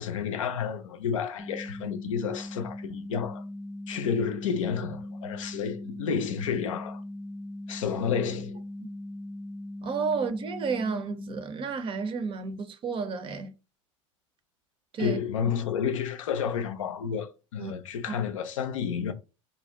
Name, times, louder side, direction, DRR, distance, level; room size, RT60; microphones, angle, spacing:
voice 1, 0.0-3.4 3.9-7.0 7.7-8.6 15.0-19.1, left 7 dB, 75° left, 0.5 m, -30 dB
sound 1, 1.4-11.4, left 1 dB, 5° left, 0.6 m, -39 dB
voice 2, 9.8-13.5 14.9-15.2 17.6-17.7, right 5 dB, 30° right, 0.5 m, -31 dB
2.6 x 2.1 x 3.4 m
hypercardioid pair, 80°, 17 cm